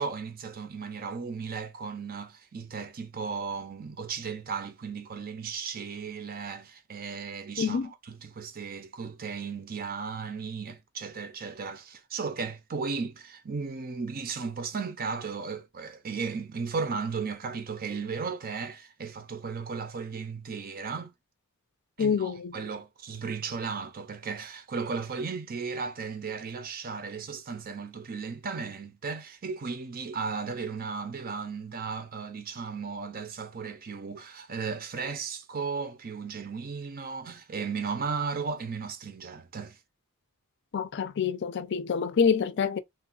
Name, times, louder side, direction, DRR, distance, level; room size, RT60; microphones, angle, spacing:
voice 1, 0.0-21.1 22.0-39.8, right 5 dB, 45° right, 0.6 m, -35 dB
voice 2, 7.6-7.9 22.0-22.6 40.7-42.8, left 6 dB, 55° left, 0.4 m, -27 dB
3.4 x 2.3 x 2.3 m
head